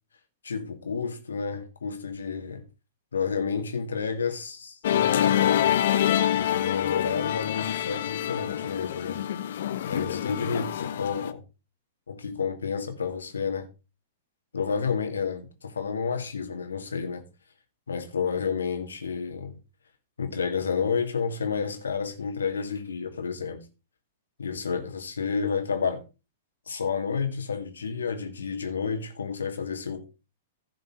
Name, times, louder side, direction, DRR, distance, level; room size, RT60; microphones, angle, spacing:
voice 1, 0.4-2.6 3.1-5.9 6.3-9.2 9.9-11.4 12.1-13.7 14.5-17.2 17.9-19.5 20.2-23.6 24.4-26.0 26.7-30.1, left 6 dB, 75° left, 2.2 m, -30 dB
Musical instrument, 4.8-11.3, left 11 dB, 60° left, 0.9 m, -26 dB
15.5 x 5.2 x 4.7 m
figure-of-eight pair, 105°, 0 cm